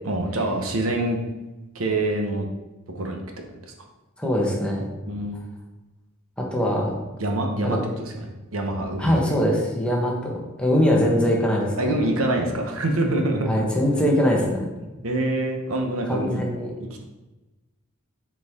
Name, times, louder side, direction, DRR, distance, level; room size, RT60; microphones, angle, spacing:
voice 1, 0.0-1.2 1.7-2.5 2.9-3.2 3.6-3.7 5.1-5.4 7.2-9.2 11.8-13.5 14.8-16.4, right 1 dB, 75° right, 3 dB, 1.0 m, -25 dB
voice 2, 4.2-4.9 6.4-7.0 7.6-7.8 9.0-11.7 13.5-14.7 16.1-16.7, equal, 5° left, -2 dB, 1.3 m, -22 dB
8.0 x 4.7 x 3.7 m, 1.1 s
head